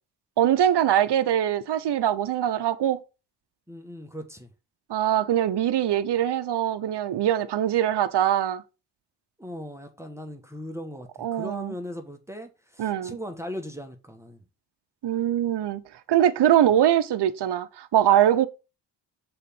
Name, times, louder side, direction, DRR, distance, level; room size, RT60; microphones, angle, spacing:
voice 1, 0.4-3.0 4.9-8.6 11.2-11.7 12.8-13.2 15.0-15.8 16.1-18.5, right 11 dB, 60° right, 0.9 m, -22 dB
voice 2, 3.7-4.5 9.4-14.4, equal, 5° right, 1.6 m, -38 dB
6.5 x 4.5 x 5.4 m
supercardioid pair, 50°, 46 cm